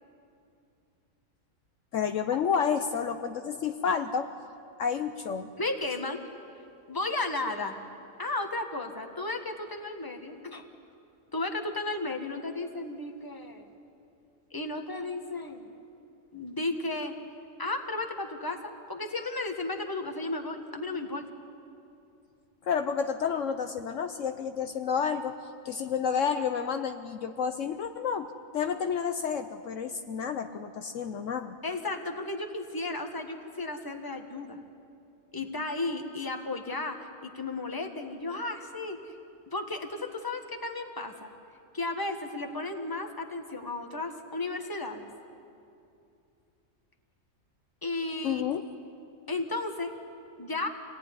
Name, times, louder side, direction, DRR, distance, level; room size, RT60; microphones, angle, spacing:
voice 1, 1.9-4.3 4.8-5.5 22.6-25.4 25.6-31.6 48.2-48.7, left 7 dB, 65° left, 7 dB, 1.1 m, -30 dB
voice 2, 5.6-6.2 6.9-7.8 8.2-10.6 11.3-13.7 14.5-15.6 16.3-17.1 17.6-21.3 31.6-34.6 35.3-37.0 37.2-39.1 39.5-41.3 41.7-45.1 47.8-48.4 49.3-49.9 50.4-50.7, left 2 dB, 15° left, 4 dB, 1.6 m, -34 dB
26.0 x 18.0 x 9.9 m, 2.6 s
omnidirectional pair, 1.4 m